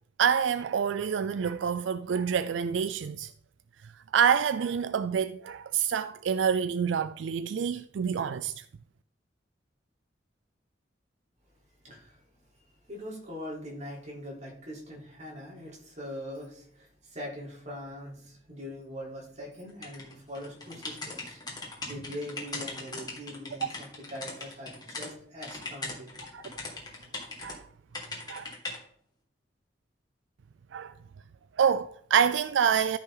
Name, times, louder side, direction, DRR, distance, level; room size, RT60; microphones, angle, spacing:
voice 1, 0.2-3.3 4.1-8.6 27.4-27.6 28.3-28.5 30.7-30.9 31.6-33.0, right 7 dB, 80° right, 0.4 m, -27 dB
voice 2, 11.8-26.1, equal, 40° right, 3.7 m, -42 dB
sound 1, 19.8-25.1 25.4-27.6 27.9-28.8, left 3 dB, 25° left, 2.3 m, -39 dB
13.0 x 5.7 x 3.9 m
head